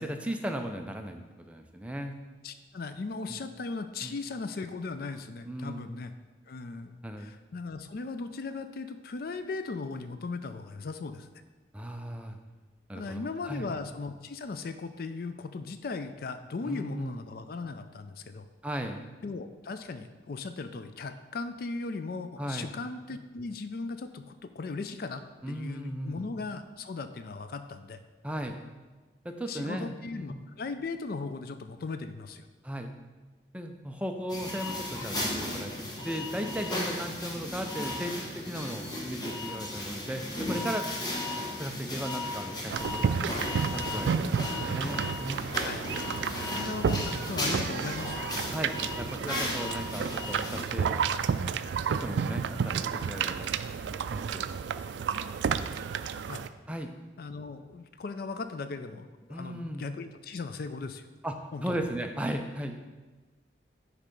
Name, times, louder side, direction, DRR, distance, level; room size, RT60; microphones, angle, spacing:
voice 1, 0.0-2.2 3.3-3.4 4.0-4.1 5.5-5.8 7.0-7.3 11.7-12.4 12.9-13.7 16.6-17.2 18.6-19.0 22.4-22.7 25.4-26.3 28.2-28.6 29.2-30.4 32.6-32.9 33.5-40.9 41.6-43.3 43.7-45.5 48.5-51.0 51.6-53.5 53.8-54.4 56.7-56.9 59.3-59.8 61.2-62.7, equal, 5° right, 4 dB, 0.5 m, -36 dB
voice 2, 2.4-6.1 6.5-11.3 12.9-18.5 19.2-28.0 29.5-32.5 41.2-41.3 44.5-44.9 45.6-45.9 46.2-48.3 56.3-56.4 57.2-61.1 61.5-61.8, left 3 dB, 55° left, 10 dB, 0.4 m, -38 dB
sound 1, 34.3-50.6, left 1 dB, 20° left, 1.1 m, -35 dB
sound 2, 42.7-56.5, right 6 dB, 70° right, 0.3 m, -31 dB
9.8 x 3.3 x 5.3 m, 1.3 s
head